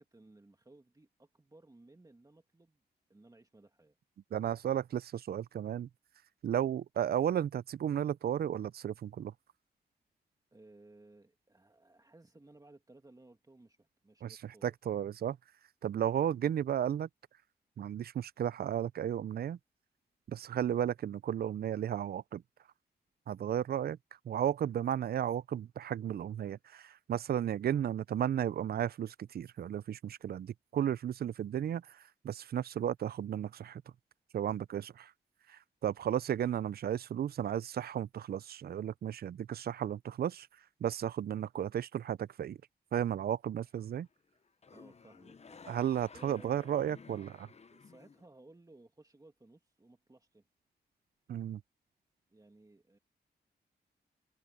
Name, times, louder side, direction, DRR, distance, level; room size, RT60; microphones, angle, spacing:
voice 1, 0.0-2.8 3.1-4.0 10.5-14.7 16.2-16.4 44.7-45.6 46.1-46.9 47.7-50.5 52.3-53.0, right 2 dB, 20° right, 2.3 m, -59 dB
voice 2, 4.3-5.9 6.4-9.3 14.2-14.3 14.6-15.4 15.8-17.1 17.8-19.6 20.3-22.4 23.3-24.0 24.3-31.8 32.2-33.8 34.3-35.1 35.5-40.5 40.8-42.6 42.9-44.1 45.7-47.5 51.3-51.6, right 10 dB, 65° right, 0.4 m, -34 dB
sound 1, 43.6-44.1 44.3-48.3, left 5 dB, 40° left, 0.8 m, -55 dB
cardioid pair, 75°, 17 cm